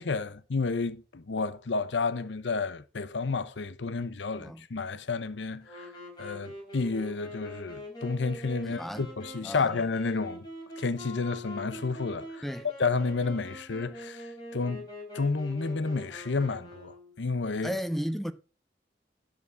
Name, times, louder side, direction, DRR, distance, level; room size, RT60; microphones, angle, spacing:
voice 1, 0.0-5.9 6.2-10.5 10.8-12.4 12.8-14.2 14.5-14.9 15.1-17.7, left 4 dB, 85° left, 0.7 m, -31 dB
Wind instrument woodwind instrument, 5.6-17.3, left 1 dB, 25° left, 4.2 m, -44 dB
voice 2, 8.6-9.1 9.4-9.7 12.4-12.7 17.6-18.3, equal, ahead, 0.5 m, -34 dB
11.0 x 4.0 x 6.8 m
head